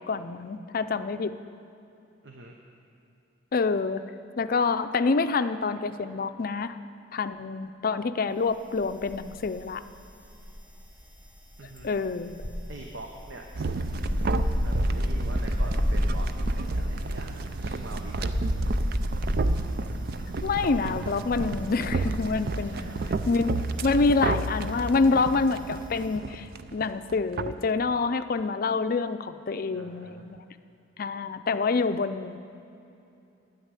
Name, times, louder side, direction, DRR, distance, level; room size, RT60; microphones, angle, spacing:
voice 1, 0.0-1.3 3.5-4.0 4.4-6.8 7.1-9.8 11.8-12.4 20.4-22.9 23.3-26.5 26.7-30.4 31.0-32.4, left 4 dB, 50° left, 11 dB, 0.5 m, -27 dB
voice 2, 2.2-2.6 11.6-11.9 12.7-13.4 13.8-13.9 14.6-18.5 22.6-23.0 29.7-30.3, right 2 dB, 70° right, 1 dB, 1.0 m, -44 dB
sound 1, 9.0-9.8 10.1-23.6 23.9-24.1, equal, 10° right, 1.1 m, -30 dB
sound 2, 13.5-27.6, right 3 dB, 50° right, 0.4 m, -32 dB
9.7 x 9.5 x 8.3 m, 2.7 s
head